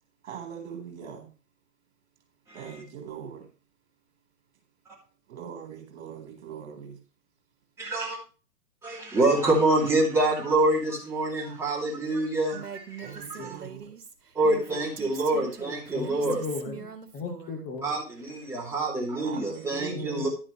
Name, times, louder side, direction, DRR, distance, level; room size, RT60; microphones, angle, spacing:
voice 1, 0.2-1.3 2.5-3.5 5.3-7.0 13.0-13.9 19.2-20.3, right 7 dB, 40° right, 4 dB, 4.1 m, -41 dB
voice 2, 2.5-2.8 7.8-8.2 8.8-13.6 14.3-16.4 17.8-20.3, right 2 dB, 5° right, -5 dB, 2.6 m, -26 dB
Female speech woman speaking, 12.5-17.6, right 7 dB, 70° right, 1.7 m, -42 dB
voice 3, 15.9-16.9 17.1-17.8 20.0-20.3, left 4 dB, 20° left, 2 dB, 2.4 m, -36 dB
11.0 x 9.8 x 3.2 m, 0.35 s
figure-of-eight pair, 125°, 48 cm